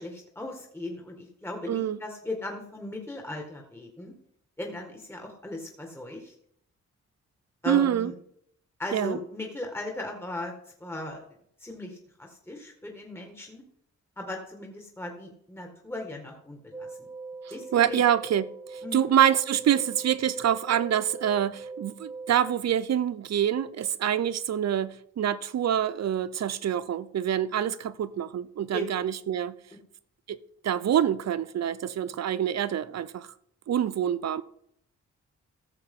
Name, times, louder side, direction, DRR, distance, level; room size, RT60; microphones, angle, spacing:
voice 1, 0.0-4.1 4.6-6.3 7.6-8.1 8.8-10.5 10.8-11.2 11.6-13.6 14.2-17.1 17.5-18.0 18.8-19.1 28.7-28.9, left 1 dB, 10° left, 1.8 m, -37 dB
voice 2, 1.7-2.0 7.7-8.1 8.9-9.2 17.7-29.6 30.3-30.4 30.6-33.3 33.7-34.4, right 10 dB, 65° right, 0.6 m, -26 dB
sound 1, 16.7-22.5, right 3 dB, 10° right, 0.9 m, -42 dB
14.5 x 6.8 x 3.7 m
cardioid pair, 75°, 29 cm